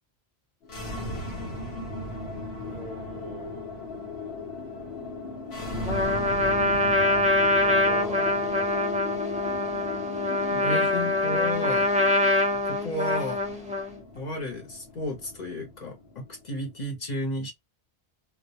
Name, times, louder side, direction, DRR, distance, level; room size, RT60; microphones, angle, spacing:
sound 1, 0.6-16.7, left 2 dB, 85° left, 1.1 m, -37 dB
voice 1, 2.6-3.6 7.6-8.7, right 2 dB, 50° right, 0.6 m, -42 dB
Trumpet, 5.9-14.0, left 1 dB, 10° right, 0.4 m, -24 dB
voice 2, 10.5-11.9 12.6-13.4 14.1-17.5, left 1 dB, 45° left, 0.8 m, -33 dB
2.1 x 2.1 x 2.8 m
omnidirectional pair, 1.1 m